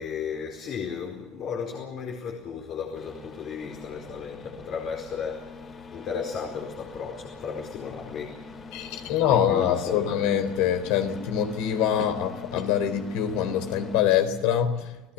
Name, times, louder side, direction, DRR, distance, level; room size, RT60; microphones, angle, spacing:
voice 1, 0.0-10.1, left 6 dB, 55° left, 4.6 m, -35 dB
sound 1, 3.0-14.0, left 4 dB, 35° left, 4.7 m, -43 dB
voice 2, 8.7-15.1, left 9 dB, 75° left, 3.8 m, -25 dB
30.0 x 17.5 x 7.1 m
supercardioid pair, 90°, 0 cm